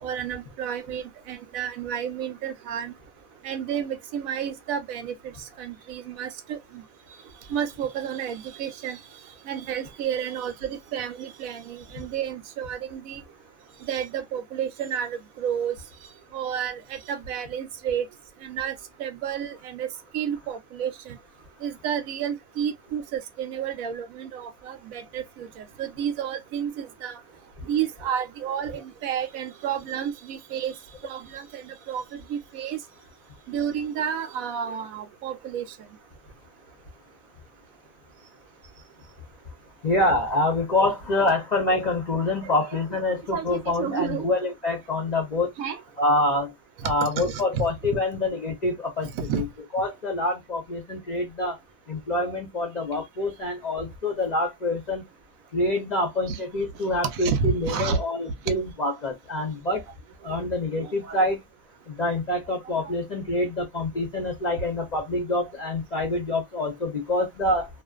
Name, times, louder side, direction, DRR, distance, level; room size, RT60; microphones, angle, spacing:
voice 1, 0.0-2.9 3.4-5.1 5.6-6.8 7.5-9.0 9.5-13.2 13.9-15.7 16.3-18.1 18.4-18.7 19.0-21.2 21.6-27.2 27.6-30.7 31.0-32.8 33.5-35.7 42.4-42.5 43.3-44.3 45.6-45.8 46.8-47.7 49.1-49.4 56.3-56.4 57.0-58.0 60.8-61.2, right 8 dB, 80° right, 1.0 m, -31 dB
voice 2, 39.8-45.5 46.0-46.5 46.8-49.1 49.4-49.5 49.7-51.6 51.9-55.0 55.5-59.8 60.2-61.4 61.9-67.7, left 2 dB, 40° left, 0.6 m, -26 dB
2.4 x 2.4 x 2.2 m
omnidirectional pair, 1.5 m